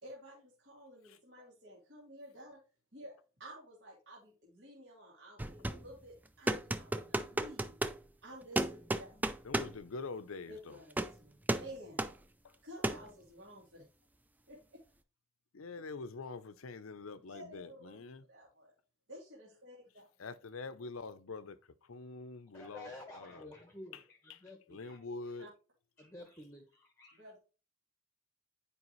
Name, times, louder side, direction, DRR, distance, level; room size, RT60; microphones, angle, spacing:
voice 1, 0.0-2.6 2.9-3.1 3.4-7.8 8.2-9.3 10.5-12.0 12.6-13.8 14.5-14.8 17.3-18.7 19.1-20.1 25.4-25.5 27.1-27.4, equal, 55° right, 2.3 m, -52 dB
sound 1, 5.4-5.9 6.5-8.0 8.6-9.8 10.9-11.2 11.5-11.7 12.0-12.1 12.8-13.1, right 1 dB, 10° right, 0.4 m, -34 dB
voice 2, 9.4-10.8 12.4-12.5 15.5-18.3 20.2-23.5 23.9-24.0 24.3-24.4 24.7-25.5, left 3 dB, 80° left, 0.6 m, -45 dB
voice 3, 22.5-25.0 26.0-27.2, left 1 dB, 15° left, 1.0 m, -51 dB
9.7 x 4.9 x 3.1 m
head